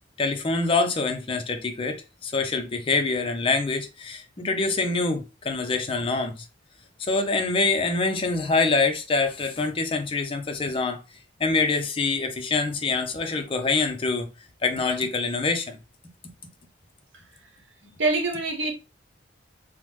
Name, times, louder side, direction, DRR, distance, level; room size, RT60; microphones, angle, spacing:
voice 1, 0.2-6.4 7.0-11.0 11.4-14.3 14.6-15.8, left 3 dB, 30° left, 0.5 m, -25 dB
voice 2, 17.1-17.5 17.8-18.7, right 3 dB, 85° right, 0.9 m, -27 dB
3.2 x 2.0 x 3.0 m
head